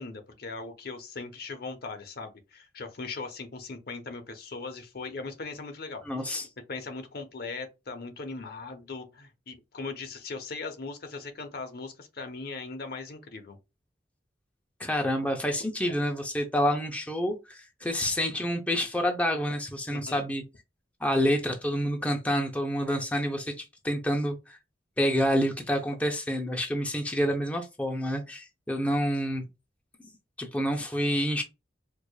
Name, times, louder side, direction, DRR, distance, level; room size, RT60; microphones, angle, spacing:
voice 1, 0.0-6.1 6.7-13.6 19.9-20.2, left 3 dB, 60° left, 0.8 m, -39 dB
voice 2, 6.1-6.5 14.8-20.4 21.0-24.6 25.0-29.4 30.4-31.4, equal, 10° left, 0.5 m, -28 dB
4.7 x 2.4 x 2.3 m
head